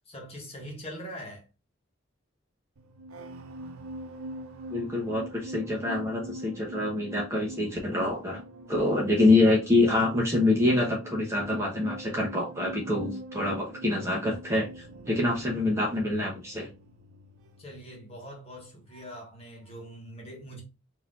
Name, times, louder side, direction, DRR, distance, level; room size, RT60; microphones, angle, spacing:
voice 1, 0.1-1.5 17.6-20.6, equal, 30° left, 1.3 m, -42 dB
sound 1, 2.8-19.4 19.7-20.0, right 1 dB, 85° right, 0.6 m, -44 dB
voice 2, 4.7-8.4 8.7-16.7, left 2 dB, 15° right, 0.9 m, -26 dB
4.1 x 2.8 x 3.7 m
head